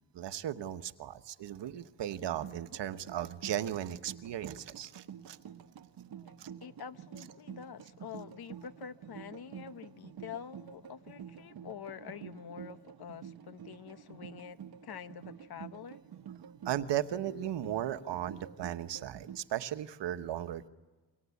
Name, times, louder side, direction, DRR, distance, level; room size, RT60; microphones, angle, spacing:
voice 1, 0.1-5.4 6.4-6.5 16.6-20.7, right 11 dB, 85° right, 1.2 m, -36 dB
sound 1, 2.2-19.4, right 8 dB, 60° right, 1.1 m, -49 dB
voice 2, 6.6-16.0, left 8 dB, 60° left, 1.1 m, -46 dB
28.5 x 24.0 x 8.4 m
cardioid pair, 115°, 41 cm